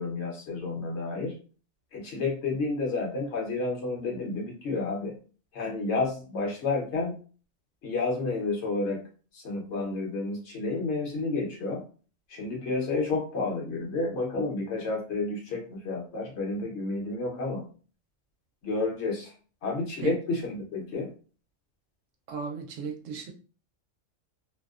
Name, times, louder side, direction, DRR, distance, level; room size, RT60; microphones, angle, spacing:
voice 1, 0.0-1.4 1.9-5.1 5.5-7.2 7.8-9.0 9.3-11.8 12.3-17.7 18.6-19.3 19.6-21.1, left 3 dB, 65° left, -1 dB, 1.1 m, -30 dB
voice 2, 22.3-23.3, right 6 dB, 80° right, 3 dB, 1.0 m, -35 dB
2.7 x 2.0 x 2.4 m, 0.39 s
omnidirectional pair, 1.3 m